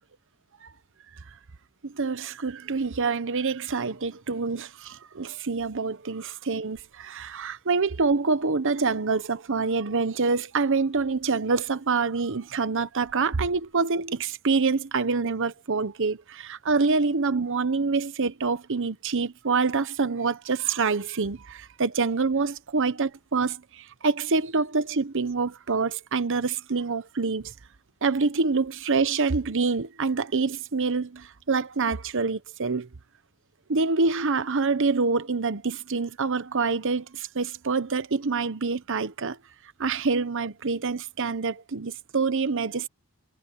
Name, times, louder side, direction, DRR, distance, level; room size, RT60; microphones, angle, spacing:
voice 1, 1.8-27.5 28.0-32.9 33.7-39.4 39.8-42.9, right 4 dB, 60° right, 1.0 m, -26 dB
head